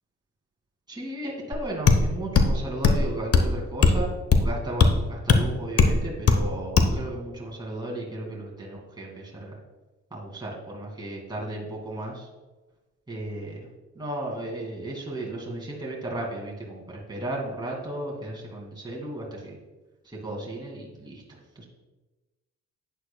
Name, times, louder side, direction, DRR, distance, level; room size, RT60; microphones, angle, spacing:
voice 1, 0.9-4.1 4.4-9.6 10.1-12.3 13.1-13.7 14.0-19.6 20.0-21.2 21.6-21.7, right 1 dB, 15° right, -3 dB, 2.4 m, -35 dB
sound 1, 1.5-1.6 1.9-2.0 2.3-2.5 2.8-3.0 3.3-3.5 3.8-4.0 4.3-4.5 4.8-4.9 5.3-5.4 5.8-5.9 6.3-6.4 6.8-6.9, left 4 dB, 50° left, 1.0 m, -17 dB
11.0 x 9.0 x 2.3 m, 1.2 s
cardioid pair, 90°, 30 cm